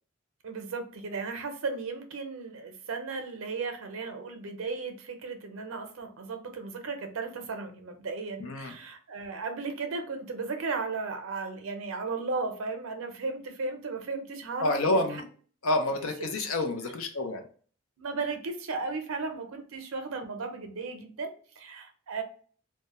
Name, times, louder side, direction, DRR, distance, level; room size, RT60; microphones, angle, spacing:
voice 1, 0.4-15.2 16.0-16.1 18.0-22.2, right 4 dB, 80° right, 5 dB, 0.5 m, -35 dB
voice 2, 8.4-8.7 14.6-15.2 15.6-17.4, left 2 dB, 80° left, 5 dB, 0.5 m, -28 dB
2.3 x 2.1 x 2.9 m, 0.43 s
head